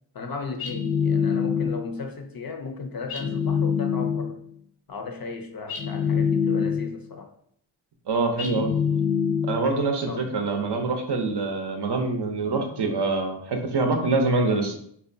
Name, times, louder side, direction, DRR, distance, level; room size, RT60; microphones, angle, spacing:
voice 1, 0.1-4.4 4.9-7.3 10.1-10.3, left 4 dB, 50° left, 5 dB, 0.5 m, -36 dB
sound 1, 0.6-2.0 3.1-4.4 5.7-7.1 8.4-9.8, left 7 dB, 85° left, 0.7 m, -25 dB
voice 2, 8.1-8.8 9.4-14.8, right 3 dB, 55° right, 4 dB, 0.6 m, -25 dB
2.7 x 2.2 x 2.5 m, 0.66 s
cardioid pair, 40°, 49 cm